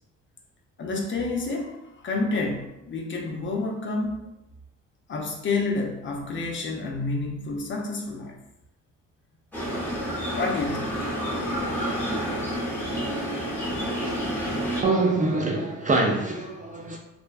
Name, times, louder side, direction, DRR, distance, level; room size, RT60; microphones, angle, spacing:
voice 1, 0.8-1.8 2.0-4.3 5.1-8.4 10.3-11.1, left 3 dB, 40° left, 1 dB, 0.5 m, -29 dB
sound 1, 9.5-14.8, equal, 5° left, 0.8 m, -29 dB
voice 2, 14.8-17.0, right 2 dB, 25° right, 0 dB, 0.3 m, -24 dB
2.6 x 2.1 x 2.3 m, 0.90 s
cardioid pair, 90°, 30 cm